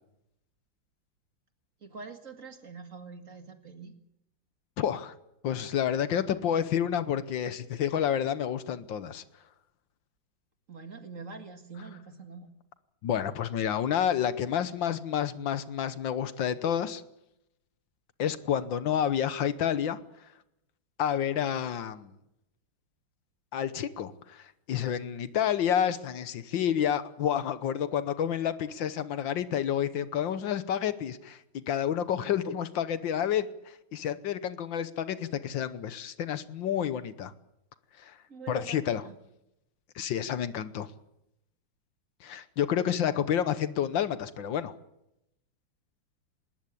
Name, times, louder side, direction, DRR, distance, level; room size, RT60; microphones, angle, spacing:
voice 1, 1.8-4.0 10.7-12.5 38.3-39.2, right 4 dB, 40° right, 7 dB, 2.2 m, -45 dB
voice 2, 4.8-5.1 5.4-9.2 13.0-17.0 18.2-20.0 21.0-22.1 23.5-37.3 38.0-38.2 38.5-39.0 39.9-40.9 42.2-44.7, left 9 dB, 70° left, 13 dB, 1.7 m, -29 dB
20.5 x 18.5 x 8.6 m, 0.85 s
omnidirectional pair, 2.1 m